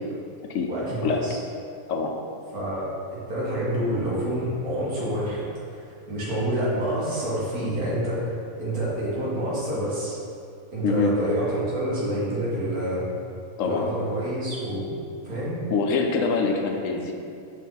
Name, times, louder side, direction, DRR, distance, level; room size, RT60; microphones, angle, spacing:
voice 1, 0.7-1.4 2.5-2.9 3.1-5.4 5.7-10.2 10.7-13.0 13.6-14.9 15.2-15.6, right 1 dB, 80° right, -7 dB, 2.0 m, -28 dB
voice 2, 10.8-11.1 13.6-13.9 15.7-17.1, left 4 dB, 70° left, 3 dB, 0.9 m, -24 dB
6.0 x 4.6 x 4.0 m, 2.5 s
omnidirectional pair, 1.5 m